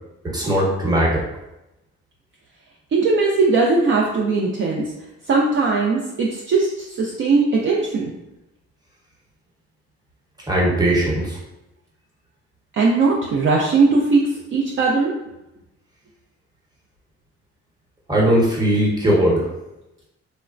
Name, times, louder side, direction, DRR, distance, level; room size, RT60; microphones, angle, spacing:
voice 1, 0.2-1.2 10.5-11.4 18.1-19.5, right 1 dB, 15° right, -4 dB, 0.9 m, -19 dB
voice 2, 2.9-4.9 5.3-8.1 12.7-15.1, right 3 dB, 45° right, -2 dB, 0.4 m, -19 dB
3.2 x 2.0 x 2.4 m, 0.92 s
cardioid pair, 90°, 30 cm